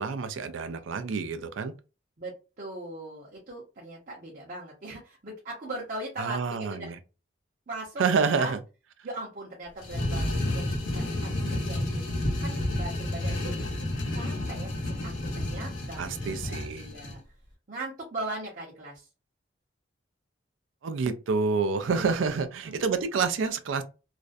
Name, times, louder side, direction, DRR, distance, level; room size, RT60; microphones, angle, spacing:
voice 1, 0.0-1.7 6.2-7.0 8.0-8.6 16.0-16.9 20.8-23.8, right 5 dB, 80° right, 0.4 m, -28 dB
voice 2, 2.2-6.9 7.7-8.0 8.3-8.5 9.0-12.0 12.4-13.7 14.1-17.2 17.7-19.1 21.8-22.2 22.7-22.8, right 2 dB, 45° right, 0.7 m, -39 dB
sound 1, 9.8-17.2, left 1 dB, 85° left, 0.8 m, -30 dB
2.4 x 2.1 x 2.4 m
head